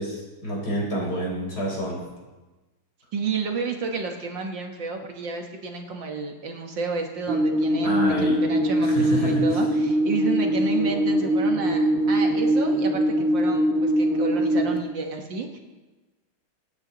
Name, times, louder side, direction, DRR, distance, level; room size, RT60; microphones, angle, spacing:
voice 1, 0.0-2.0 7.8-8.4 8.8-9.6, equal, 45° left, -2 dB, 5.0 m, -28 dB
voice 2, 3.1-15.6, right 4 dB, 65° right, 3 dB, 2.0 m, -31 dB
sound 1, 7.3-14.8, right 1 dB, 30° right, 1.9 m, -22 dB
25.0 x 9.5 x 4.0 m, 1.2 s
omnidirectional pair, 2.3 m